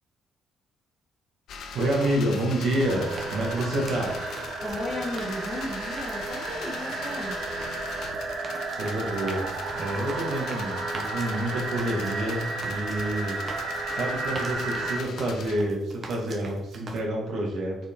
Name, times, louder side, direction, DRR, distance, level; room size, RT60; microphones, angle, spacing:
sound 1, 1.5-15.6, left 5 dB, 65° left, 0.9 m, -41 dB
sound 2, 1.7-17.0, right 3 dB, 30° right, 1.1 m, -44 dB
voice 1, 1.7-4.2 8.7-17.8, right 1 dB, 60° right, -1 dB, 1.9 m, -28 dB
sound 3, 2.8-15.0, right 3 dB, 75° right, 1.5 m, -33 dB
voice 2, 4.6-7.4, left 1 dB, 25° left, -4 dB, 2.2 m, -35 dB
6.9 x 4.9 x 3.8 m, 0.82 s
cardioid pair, 150°, 0 cm